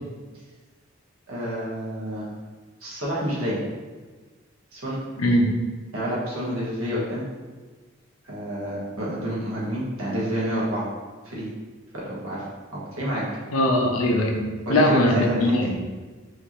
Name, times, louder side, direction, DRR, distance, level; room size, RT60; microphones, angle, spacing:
voice 1, 1.3-2.3 2.8-3.6 4.7-5.0 5.9-7.2 8.2-10.9 11.2-11.5 11.9-12.5 12.7-13.2 14.6-15.7, equal, 85° right, -6 dB, 1.3 m, -29 dB
voice 2, 5.2-5.5 13.5-15.7, left 1 dB, 85° left, 1 dB, 0.7 m, -21 dB
4.6 x 2.8 x 3.0 m, 1.3 s
head